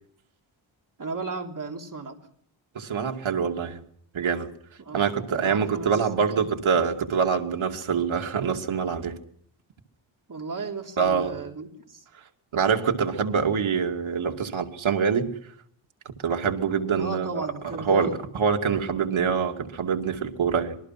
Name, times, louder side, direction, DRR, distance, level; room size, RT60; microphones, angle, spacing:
voice 1, 1.0-2.2 4.8-6.0 6.3-6.5 10.3-12.1 16.9-18.2, right 3 dB, 40° right, 3 dB, 3.4 m, -35 dB
voice 2, 2.7-3.8 4.1-4.5 4.9-9.2 11.0-11.4 12.5-15.3 16.2-17.5 17.8-18.1 18.3-20.8, right 6 dB, 80° right, 4 dB, 2.7 m, -25 dB
26.0 x 20.5 x 5.9 m, 0.63 s
wide cardioid pair, 135°, 47 cm